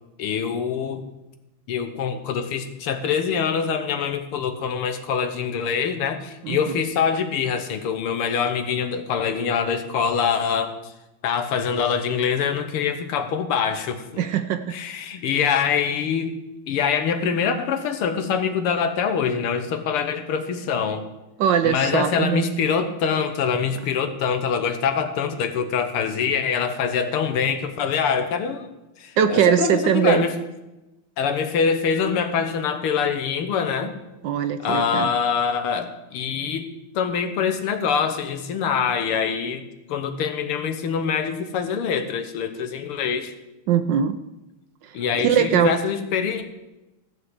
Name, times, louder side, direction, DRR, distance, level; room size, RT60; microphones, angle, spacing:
voice 1, 0.2-1.0 1.7-10.9 11.2-14.3 14.7-16.4 16.7-21.0 21.6-28.7 29.0-30.4 31.2-34.0 34.6-36.7 36.9-39.6 39.9-43.3 44.9-46.4, left 6 dB, 85° left, 8 dB, 2.0 m, -24 dB
voice 2, 14.2-14.8 21.4-22.5 29.2-30.3 34.2-35.1 43.7-44.2 45.2-45.8, right 8 dB, 70° right, 10 dB, 1.1 m, -21 dB
14.5 x 5.7 x 7.8 m, 1.0 s
omnidirectional pair, 2.4 m